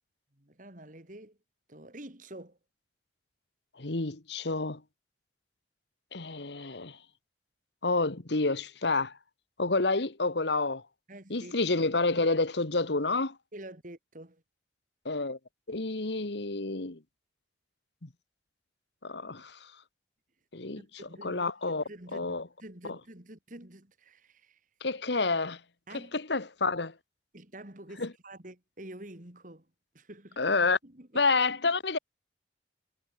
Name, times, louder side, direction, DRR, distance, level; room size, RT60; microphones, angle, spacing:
voice 1, 0.3-1.4 1.7-2.6 11.1-11.6 13.5-14.4 20.8-24.6 25.9-26.2 27.3-29.7 29.9-30.4 30.8-31.2, right 1 dB, 45° right, 3.4 m, -48 dB
voice 2, 3.8-4.8 6.1-7.0 7.8-9.1 9.6-10.8 11.3-13.3 15.0-15.4 15.7-17.0 18.0-18.1 19.0-19.6 20.5-20.8 21.2-21.8 22.1-22.4 24.8-25.6 25.9-26.9 28.0-28.1 30.4-30.8 31.1-32.0, left 3 dB, 70° left, 1.6 m, -29 dB
head